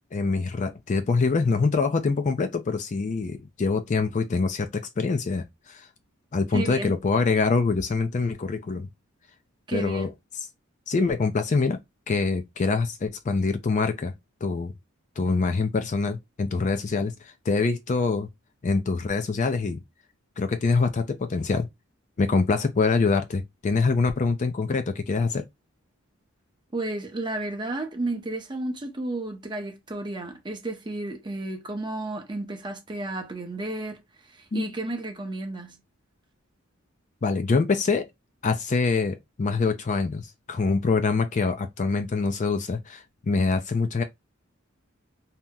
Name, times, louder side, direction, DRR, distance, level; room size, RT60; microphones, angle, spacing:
voice 1, 0.1-5.9 6.3-8.9 9.7-10.1 10.9-11.8 12.1-14.1 14.4-14.7 15.2-17.1 17.5-18.3 18.6-19.8 20.4-21.7 22.2-25.4 34.5-34.7 37.2-38.1 38.4-44.0, left 4 dB, 35° left, 0.4 m, -25 dB
voice 2, 6.5-7.0 9.7-10.1 26.7-35.8, right 2 dB, 20° right, 0.7 m, -32 dB
2.8 x 2.0 x 3.5 m
head